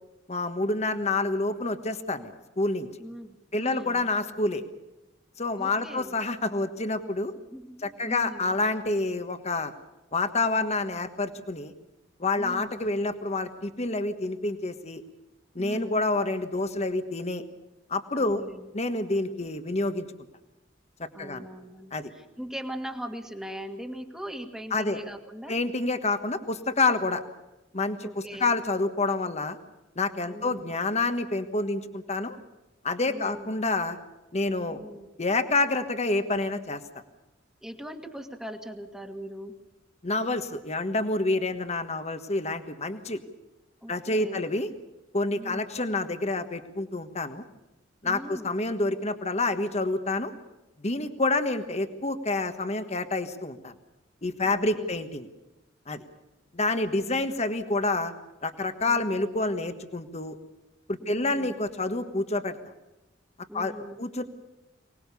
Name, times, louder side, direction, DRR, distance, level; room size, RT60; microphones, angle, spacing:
voice 1, 0.3-2.9 3.5-4.6 5.4-7.3 7.8-9.7 10.1-11.7 12.2-15.0 15.5-17.4 17.9-18.4 18.7-20.0 21.0-21.4 21.9-22.1 24.7-25.0 25.5-27.2 27.7-29.6 29.9-32.4 32.8-34.0 34.3-34.8 35.2-36.8 40.0-43.2 43.9-44.7 45.1-47.4 48.0-50.3 50.8-53.7 54.2-55.3 55.9-56.0 56.5-58.1 58.4-60.3 60.9-62.6 63.5-63.7 64.0-64.2, left 2 dB, 35° left, 9 dB, 1.4 m, -28 dB
voice 2, 3.0-4.1 5.5-6.2 7.5-8.6 12.3-12.9 15.6-16.0 18.1-18.7 21.1-25.6 28.0-28.5 30.2-30.8 33.1-33.6 34.7-35.1 37.6-39.6 43.8-44.4 45.3-45.7 48.0-48.5 54.4-55.0 56.8-57.3 58.9-59.2 61.0-61.6 63.5-64.1, equal, 5° right, 4 dB, 1.9 m, -40 dB
24.5 x 19.5 x 7.0 m, 0.99 s
head